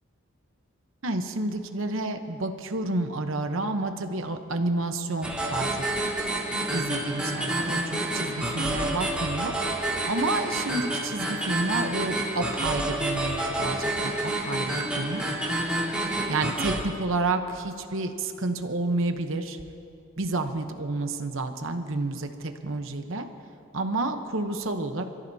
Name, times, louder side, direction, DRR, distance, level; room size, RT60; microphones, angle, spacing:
voice 1, 1.0-5.9 6.7-9.6 10.1-13.8 14.0-15.2 16.3-19.6 20.2-23.3 23.7-25.0, right 2 dB, 65° right, 7 dB, 0.9 m, -30 dB
sound 1, 5.2-16.8, right 1 dB, 5° right, 2.1 m, -29 dB
27.5 x 14.0 x 2.8 m, 2.6 s
head